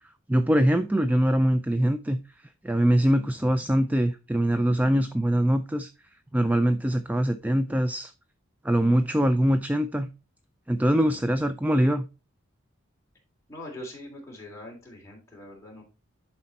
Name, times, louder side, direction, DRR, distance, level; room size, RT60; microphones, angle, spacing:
voice 1, 0.3-2.2 2.6-5.9 6.3-8.1 8.6-10.1 10.7-12.0, equal, 5° right, 10 dB, 0.3 m, -23 dB
voice 2, 13.5-15.8, left 1 dB, 15° left, -3 dB, 3.2 m, -42 dB
11.0 x 4.3 x 4.2 m, 0.31 s
head